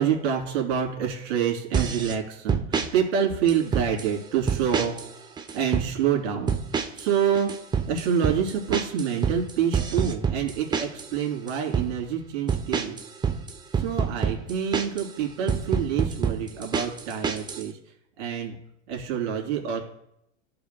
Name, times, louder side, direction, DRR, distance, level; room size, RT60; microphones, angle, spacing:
voice 1, 0.0-5.3 5.5-6.6 7.0-7.5 7.9-13.0 13.8-17.7 18.2-18.6 18.9-19.8, right 8 dB, 60° right, 0 dB, 2.9 m, -27 dB
sound 1, 1.7-2.2 2.5-2.9 3.5-4.1 4.5-5.1 5.4-5.9 6.5-7.1 7.3-11.1 11.5-11.9 12.5-15.1 15.5-17.6, right 6 dB, 10° right, 0.5 m, -26 dB
14.5 x 4.9 x 2.2 m, 0.77 s
hypercardioid pair, 115°, 40 cm